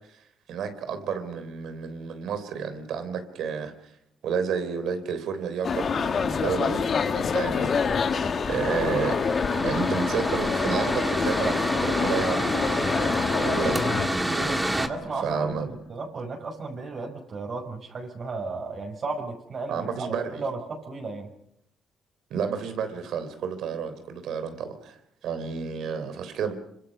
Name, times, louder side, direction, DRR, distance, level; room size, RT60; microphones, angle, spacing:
voice 1, 0.5-3.9 4.2-8.2 8.5-9.2 9.6-14.6 15.2-15.7 19.7-20.4 22.3-26.5, right 6 dB, 80° right, 9 dB, 3.6 m, -31 dB
sound 1, 5.6-14.1, left 6 dB, 50° left, 1.9 m, -26 dB
sound 2, 6.2-16.1, left 6 dB, 85° left, 5.9 m, -43 dB
Mechanical fan, 7.8-14.9, right 1 dB, 10° right, 2.0 m, -29 dB
voice 2, 14.7-21.3, right 3 dB, 50° right, 2 dB, 5.4 m, -34 dB
26.5 x 25.0 x 5.5 m, 0.77 s
cardioid pair, 90°, 0 cm